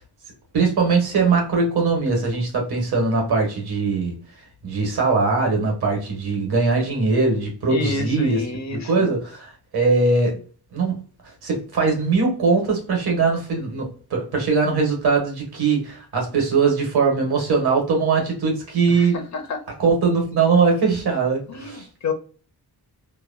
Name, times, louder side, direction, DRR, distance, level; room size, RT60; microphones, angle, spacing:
voice 1, 0.5-4.1 4.6-8.4 8.7-10.4 10.7-11.0 11.4-19.2 19.8-21.8, right 4 dB, 70° right, 1.2 m, -21 dB
voice 2, 7.7-9.1 18.9-19.6 21.5-22.1, left 4 dB, 45° left, 0.5 m, -29 dB
2.9 x 2.2 x 2.4 m
wide cardioid pair, 170°, 39 cm